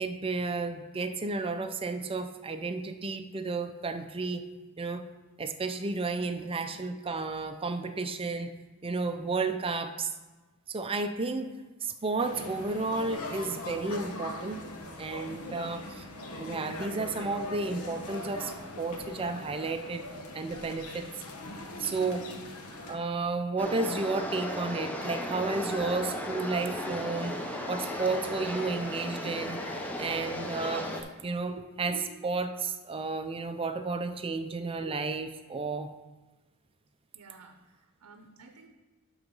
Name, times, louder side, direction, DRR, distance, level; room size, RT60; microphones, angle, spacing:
voice 1, 0.0-4.4 4.8-5.0 5.4-8.5 8.8-10.1 10.7-11.5 11.8-14.6 15.0-15.8 16.4-20.1 20.3-21.1 21.8-22.3 22.9-27.4 27.7-29.6 30.0-30.9 31.2-32.0 32.2-35.9, right 3 dB, 25° right, 8 dB, 0.5 m, -32 dB
voice 2, 6.3-6.6 15.5-15.8 21.8-22.4 30.0-30.1 31.5-32.1 34.8-35.0 37.1-38.7, right 3 dB, 85° right, 5 dB, 0.7 m, -49 dB
sound 1, 12.2-23.0, left 2 dB, 80° left, 1.2 m, -41 dB
sound 2, 23.6-31.0, left 1 dB, 5° left, 0.8 m, -35 dB
12.0 x 3.9 x 5.4 m, 1.2 s
head